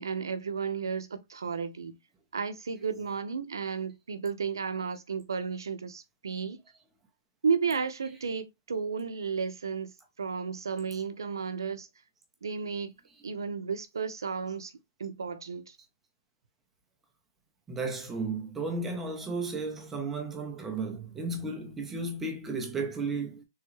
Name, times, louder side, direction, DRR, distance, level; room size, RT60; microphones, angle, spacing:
voice 1, 0.0-2.0 2.3-6.6 7.4-9.9 10.2-11.9 12.4-12.9 13.2-14.7 15.0-15.8, right 5 dB, 85° right, 0.6 m, -33 dB
voice 2, 17.7-23.4, right 3 dB, 10° right, 0.6 m, -34 dB
3.5 x 2.3 x 3.0 m
hypercardioid pair, 150°, 2 cm